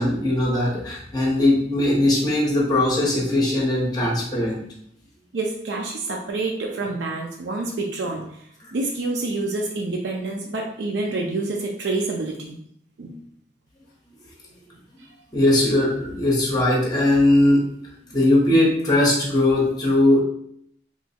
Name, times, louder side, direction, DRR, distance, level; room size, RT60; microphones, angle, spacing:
voice 1, 0.0-4.6 15.3-17.6 18.1-20.2, left 1 dB, 25° left, -3 dB, 0.9 m, -19 dB
voice 2, 5.3-8.4 8.7-12.6 13.0-13.1, right 2 dB, 75° right, 0 dB, 0.4 m, -27 dB
3.0 x 2.3 x 4.2 m, 0.70 s
head